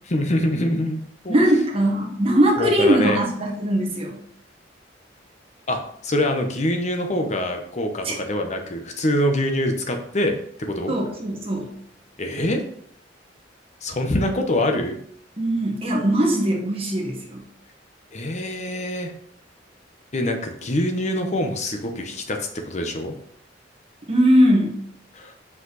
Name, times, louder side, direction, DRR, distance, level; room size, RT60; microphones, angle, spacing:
voice 1, 0.1-1.0 1.2-1.6 2.6-3.2 5.7-10.4 10.7-11.0 12.2-12.6 13.8-15.0 18.1-19.1 20.1-23.1 25.1-25.3, left 1 dB, 40° left, 4 dB, 0.9 m, -24 dB
voice 2, 1.3-4.2 8.0-8.1 10.9-11.7 15.4-17.4 24.1-24.8, right 1 dB, 30° right, -1 dB, 1.6 m, -20 dB
5.9 x 5.3 x 4.0 m, 0.65 s
head